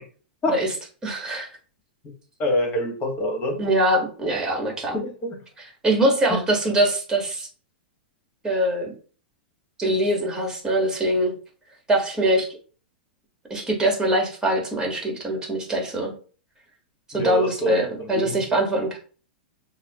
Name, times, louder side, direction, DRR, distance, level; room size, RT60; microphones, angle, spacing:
voice 1, 1.0-1.5 3.6-5.0 5.6-7.5 8.4-8.9 9.8-11.3 11.9-12.5 13.5-16.1 17.1-19.0, right 1 dB, 10° right, 1 dB, 1.6 m, -23 dB
voice 2, 2.4-3.6 4.9-5.4 6.3-6.4 17.1-18.4, equal, 30° left, 3 dB, 1.7 m, -26 dB
6.4 x 2.2 x 3.0 m, 0.40 s
hypercardioid pair, 105°, 5 cm